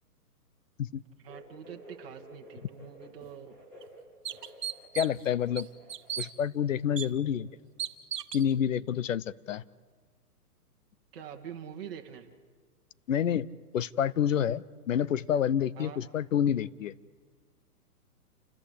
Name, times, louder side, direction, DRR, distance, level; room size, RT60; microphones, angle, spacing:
voice 1, 1.2-3.5 11.1-12.3 15.8-16.0, right 8 dB, 35° right, 2 dB, 1.9 m, -45 dB
sound 1, 1.3-6.3 6.6-7.6 7.9-8.0 9.0-9.1, right 1 dB, 5° left, 3.5 m, -52 dB
sound 2, 3.2-3.3 3.8-3.9 4.2-5.2 5.6-6.3 7.0-7.1 7.8-8.5, right 9 dB, 90° right, 1.4 m, -36 dB
voice 2, 5.0-5.7 6.2-7.5 8.3-9.6 13.1-13.5 13.7-16.9, left 9 dB, 55° left, 19 dB, 0.7 m, -28 dB
28.5 x 14.5 x 8.2 m, 1.5 s
hypercardioid pair, 165°, 47 cm